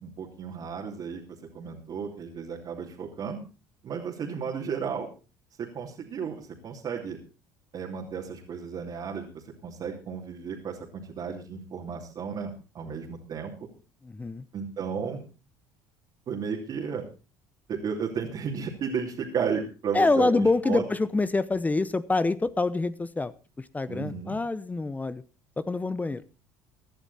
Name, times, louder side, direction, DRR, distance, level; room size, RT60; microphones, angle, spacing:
voice 1, 0.0-3.4 3.8-5.1 5.6-7.2 7.7-13.5 14.5-15.2 16.3-17.0 17.7-20.8 23.9-24.4, right 6 dB, 50° right, -1 dB, 3.0 m, -33 dB
voice 2, 14.0-14.4 19.9-25.2 25.6-26.2, left 3 dB, 15° left, 16 dB, 0.8 m, -26 dB
17.0 x 11.0 x 4.2 m, 0.33 s
hypercardioid pair, 75°, 9 cm